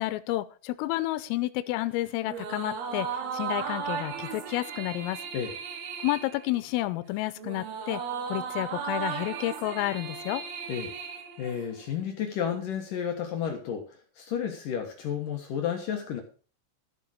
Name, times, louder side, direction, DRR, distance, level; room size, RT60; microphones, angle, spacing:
voice 1, 0.0-5.2 6.0-8.0 8.3-10.4, left 17 dB, 85° left, 14 dB, 3.3 m, -30 dB
sound 1, 2.2-12.0, right 7 dB, 60° right, 3.0 m, -36 dB
voice 2, 11.4-13.9 14.2-16.2, left 8 dB, 65° left, 3 dB, 2.1 m, -31 dB
13.5 x 6.9 x 6.3 m, 0.38 s
omnidirectional pair, 5.9 m